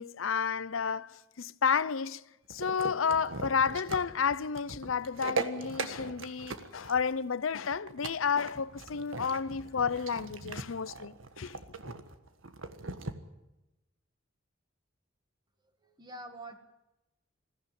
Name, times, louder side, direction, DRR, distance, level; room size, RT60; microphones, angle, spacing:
voice 1, 0.0-2.2 2.5-11.6, left 6 dB, 90° left, 0.7 m, -31 dB
sound 1, 2.5-13.1, right 3 dB, 85° right, 1.6 m, -39 dB
voice 2, 15.8-16.6, right 1 dB, 20° right, 1.8 m, -45 dB
21.5 x 15.0 x 9.0 m
head